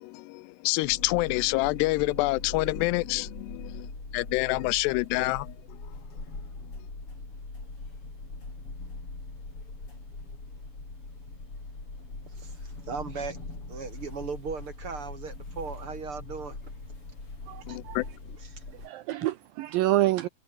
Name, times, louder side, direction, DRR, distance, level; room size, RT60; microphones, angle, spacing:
voice 1, 0.0-5.8 17.7-18.1, left 23 dB, 85° left, 2.7 m, -27 dB
sound 1, 0.8-18.9, left 3 dB, 30° left, 7.8 m, -41 dB
voice 2, 12.3-13.4 13.7-16.7 18.4-18.6, right 5 dB, 40° right, 2.4 m, -38 dB
voice 3, 17.5-18.0 18.7-20.3, right 16 dB, 80° right, 2.1 m, -27 dB
omnidirectional pair, 4.8 m